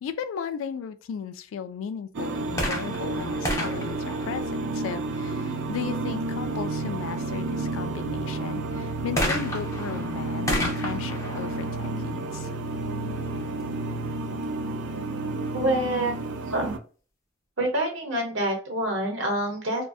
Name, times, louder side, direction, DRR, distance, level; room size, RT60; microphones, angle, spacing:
voice 1, 0.0-12.5, left 7 dB, 90° left, 0.3 m, -36 dB
sound 1, 2.1-16.8, right 2 dB, 65° right, 0.3 m, -31 dB
sound 2, 2.5-5.1 9.2-12.8 13.6-13.7, left 1 dB, 15° left, 0.5 m, -32 dB
voice 2, 15.5-16.1 16.5-16.8 17.6-19.8, right 1 dB, 85° right, 0.9 m, -26 dB
2.5 x 2.1 x 2.3 m
head